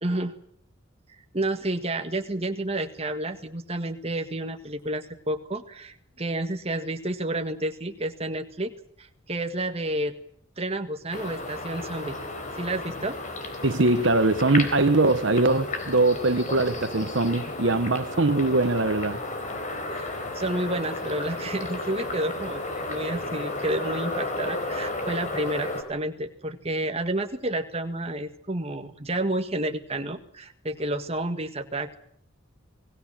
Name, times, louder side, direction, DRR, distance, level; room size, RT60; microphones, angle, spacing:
voice 1, 0.0-0.3 1.3-10.2 10.6-12.2 12.5-13.2 19.9-32.0, right 1 dB, 30° right, 1.7 m, -30 dB
sound 1, 11.1-25.8, left 2 dB, 40° left, 4.2 m, -33 dB
voice 2, 13.6-19.2, right 2 dB, 65° right, 1.2 m, -22 dB
28.0 x 18.5 x 7.5 m
head